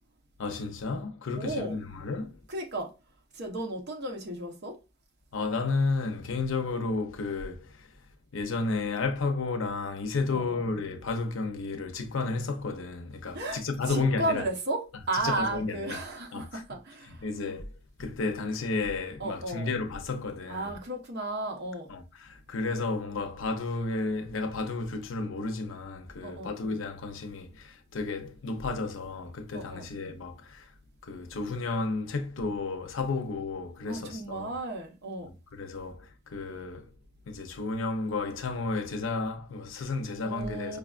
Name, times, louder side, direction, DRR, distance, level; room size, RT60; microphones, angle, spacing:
voice 1, 0.4-2.4 5.3-7.9 8.3-14.4 15.1-16.0 16.3-16.6 17.0-17.7 18.0-20.7 21.9-30.7 31.0-34.5 35.2-36.9 37.3-40.8, left 3 dB, 75° left, 0.6 m, -32 dB
voice 2, 1.3-1.8 2.5-2.9 3.3-4.8 10.3-10.6 13.3-13.6 13.9-17.3 19.2-19.7 20.5-21.9 26.2-26.5 29.5-29.9 33.9-35.3 40.2-40.8, right 2 dB, 55° right, 0.8 m, -34 dB
4.8 x 2.3 x 2.4 m
head